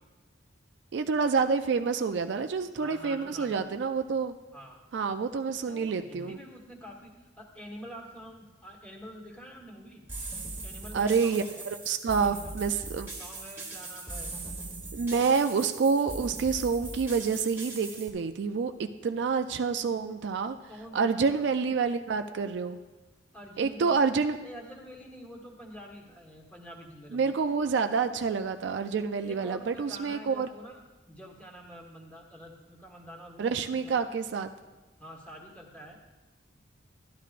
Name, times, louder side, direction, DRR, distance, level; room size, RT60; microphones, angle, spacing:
voice 1, 0.9-4.3 4.9-6.4 10.9-11.4 11.9-13.1 14.9-18.7 19.0-20.6 20.9-22.8 23.6-24.4 27.1-30.5 33.4-34.5, right 5 dB, 65° right, 8 dB, 0.4 m, -28 dB
voice 2, 2.8-3.6 4.5-4.8 5.6-10.0 10.6-11.6 12.2-12.5 13.2-14.4 20.7-21.3 21.6-21.8 23.3-24.1 24.4-27.4 29.2-30.8 31.1-34.0 35.0-36.0, equal, 5° left, -1 dB, 1.4 m, -47 dB
sound 1, 10.1-18.1, right 2 dB, 10° right, 1.3 m, -40 dB
12.5 x 11.0 x 2.5 m, 1.2 s
head